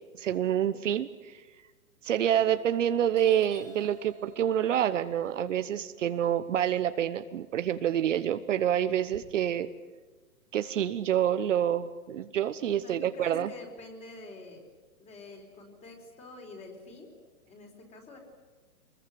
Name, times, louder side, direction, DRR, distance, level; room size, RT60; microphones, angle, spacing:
voice 1, 0.2-1.4 2.0-9.7 10.5-13.5, right 10 dB, 55° right, 11 dB, 1.1 m, -27 dB
Doorbell, 2.7-2.9 3.1-7.3 7.7-9.2, right 5 dB, 85° right, 3.8 m, -53 dB
voice 2, 12.7-14.6 15.0-17.1 17.4-18.2, left 2 dB, 15° left, 3 dB, 4.4 m, -47 dB
25.0 x 21.0 x 9.3 m, 1.3 s
hypercardioid pair, 150°, 45 cm